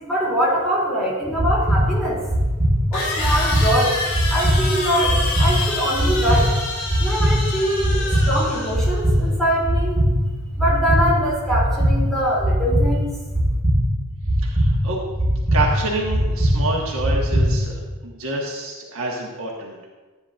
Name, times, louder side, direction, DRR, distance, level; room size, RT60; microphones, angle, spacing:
voice 1, 0.0-2.2 2.9-3.9 4.3-6.5 7.0-10.0 10.6-13.2, equal, ahead, -7 dB, 3.1 m, -23 dB
sound 1, 1.3-1.4 2.9-9.0, left 2 dB, 75° left, 2.6 m, -28 dB
sound 2, 1.3-17.9, equal, 55° right, 1.8 m, -21 dB
voice 2, 14.4-15.0 15.5-19.8, right 2 dB, 70° right, -3 dB, 1.5 m, -27 dB
13.5 x 9.5 x 2.6 m, 1.3 s
head